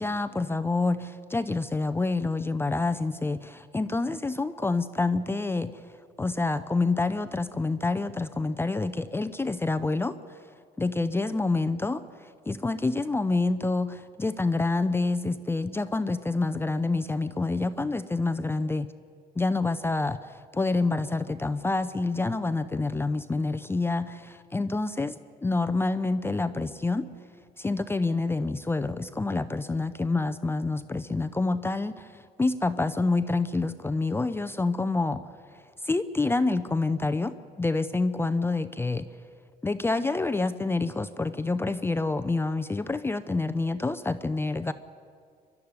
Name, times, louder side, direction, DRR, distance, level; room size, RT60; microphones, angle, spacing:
voice 1, 0.0-5.7 6.2-10.4 10.8-18.9 19.4-25.1 25.4-27.1 27.6-35.2 35.8-39.1 39.6-44.7, left 3 dB, 15° left, 10 dB, 0.6 m, -27 dB
24.0 x 12.0 x 9.6 m, 2.2 s
cardioid pair, 110°, 17 cm